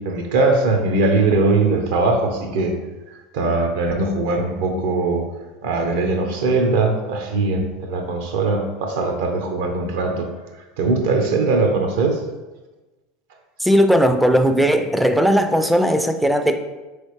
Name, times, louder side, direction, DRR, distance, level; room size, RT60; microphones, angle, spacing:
voice 1, 0.0-2.7 3.1-5.2 5.6-10.3 10.8-12.2, right 3 dB, 75° right, 4 dB, 0.6 m, -20 dB
voice 2, 13.6-16.6, equal, ahead, 8 dB, 0.3 m, -17 dB
3.9 x 3.2 x 3.1 m, 1.2 s
hypercardioid pair, 90°, 0 cm